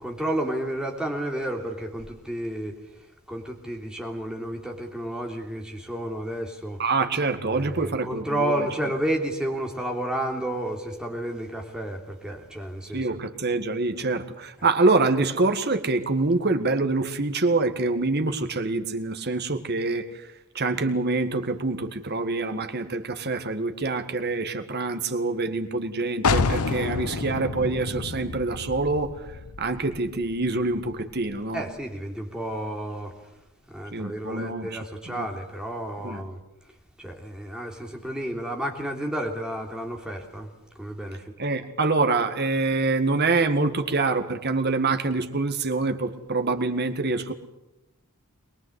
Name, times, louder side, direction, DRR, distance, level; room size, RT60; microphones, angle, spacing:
voice 1, 0.0-6.8 7.4-13.1 31.5-33.1 33.7-36.4 37.0-40.5 40.7-41.3, right 1 dB, 5° right, 3.3 m, -31 dB
voice 2, 6.8-8.7 12.9-31.6 33.9-34.8 35.1-35.3 36.0-36.2 41.4-47.3, right 3 dB, 50° right, 1.7 m, -26 dB
sound 1, 26.2-31.8, left 4 dB, 80° left, 0.8 m, -30 dB
22.5 x 21.5 x 8.1 m
head